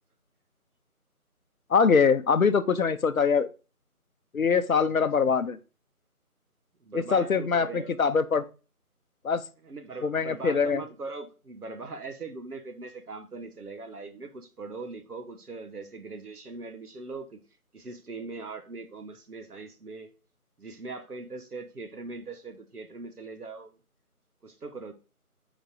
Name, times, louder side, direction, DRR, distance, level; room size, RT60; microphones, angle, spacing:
voice 1, 1.7-3.5 4.3-5.6 6.9-8.4 9.2-9.4 10.0-10.8, left 5 dB, 65° left, 0.7 m, -23 dB
voice 2, 6.8-8.0 9.6-17.4 17.7-20.1 20.6-23.7 24.4-24.9, right 3 dB, 80° right, 1.2 m, -40 dB
5.2 x 4.0 x 4.7 m
figure-of-eight pair, 175°, 45 cm